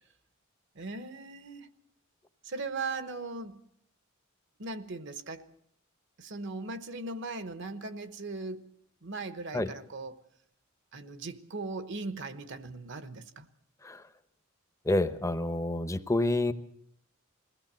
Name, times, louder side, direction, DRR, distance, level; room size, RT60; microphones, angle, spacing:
voice 1, 0.7-1.7 2.4-3.6 4.6-5.4 6.2-8.7 9.0-10.2 10.9-13.5, right 3 dB, 60° right, 12 dB, 1.1 m, -38 dB
voice 2, 14.8-16.5, left 1 dB, 15° left, 11 dB, 0.8 m, -28 dB
21.5 x 16.5 x 7.5 m, 0.71 s
head